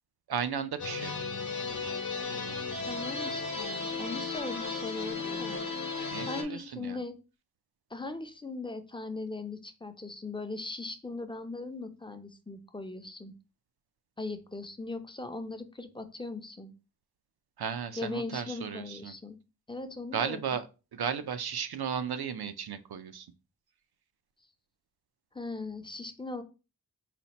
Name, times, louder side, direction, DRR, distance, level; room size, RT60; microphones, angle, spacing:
voice 1, 0.3-1.2 6.1-7.0 17.6-19.2 20.1-23.3, right 7 dB, 80° right, 10 dB, 0.5 m, -35 dB
sound 1, 0.8-6.4, left 4 dB, 50° left, 0.9 m, -35 dB
voice 2, 2.8-5.6 6.3-7.2 7.9-13.3 14.2-16.7 18.0-19.4 19.7-20.4 25.3-26.4, left 3 dB, 15° left, 8 dB, 0.5 m, -39 dB
4.2 x 2.1 x 4.0 m, 0.31 s
wide cardioid pair, 70°, 37 cm